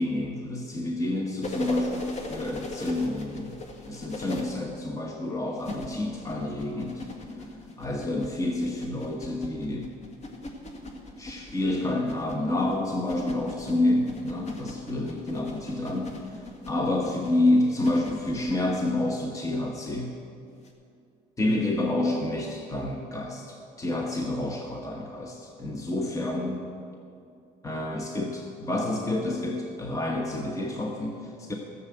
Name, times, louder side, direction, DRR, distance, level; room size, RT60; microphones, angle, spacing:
voice 1, 0.0-3.6 3.9-7.0 7.8-9.9 11.2-16.1 16.7-20.1 21.4-26.6 27.6-31.5, left 1 dB, 20° left, 1 dB, 1.2 m, -28 dB
sound 1, 1.4-4.4 5.6-19.0 20.6-20.7, left 2 dB, 40° left, 1.8 m, -39 dB
14.0 x 7.4 x 7.9 m, 2.5 s
cardioid pair, 110°, 17 cm